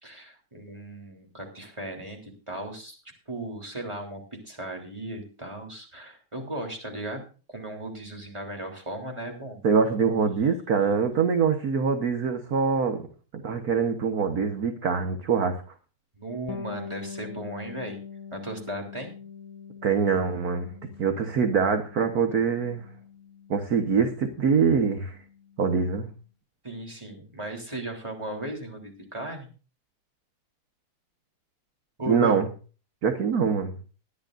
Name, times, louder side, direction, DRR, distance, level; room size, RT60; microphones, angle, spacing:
voice 1, 0.0-3.0 3.3-9.6 16.1-18.0 18.3-19.1 26.6-29.5 32.0-32.4, right 1 dB, 15° right, 3.4 m, -36 dB
voice 2, 9.6-13.0 13.4-15.6 19.8-20.7 21.0-22.8 23.5-25.2 25.6-26.1 32.0-32.5 33.0-33.7, right 6 dB, 50° right, 1.6 m, -24 dB
Bass guitar, 16.5-26.1, left 6 dB, 70° left, 2.1 m, -44 dB
20.5 x 11.5 x 2.6 m
omnidirectional pair, 2.3 m